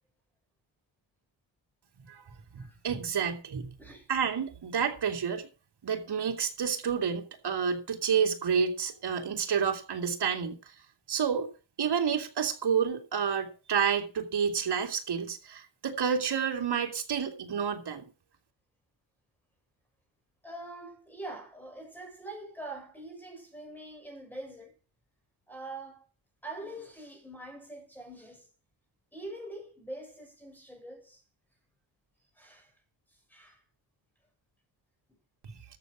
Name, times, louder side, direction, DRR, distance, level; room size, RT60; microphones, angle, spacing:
voice 1, 2.5-3.7 4.1-5.5 5.8-10.6 11.1-11.5 11.8-18.1 35.4-35.5, right 7 dB, 55° right, 2.7 m, -29 dB
voice 2, 20.4-24.7 25.5-26.0 26.4-28.5 29.1-31.2 32.3-32.7 33.3-33.6, right 1 dB, 5° left, 6.5 m, -44 dB
13.5 x 7.3 x 6.3 m
cardioid pair, 95°, 46 cm